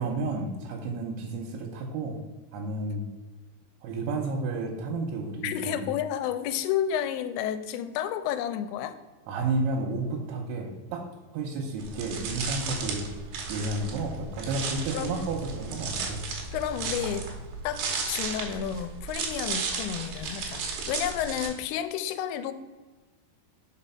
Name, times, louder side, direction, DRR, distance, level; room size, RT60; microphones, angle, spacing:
voice 1, 0.0-2.2 2.5-3.1 3.8-5.9 9.3-11.1 11.3-13.1 13.5-16.2, right 3 dB, 85° right, 0 dB, 3.1 m, -31 dB
voice 2, 5.4-9.0 14.9-15.3 16.5-17.3 17.6-17.8 18.1-22.5, left 10 dB, 90° left, 11 dB, 2.8 m, -31 dB
sound 1, 11.8-21.5, right 4 dB, 70° right, 2.5 m, -34 dB
5.3 x 5.1 x 5.6 m, 1.3 s
omnidirectional pair, 5.0 m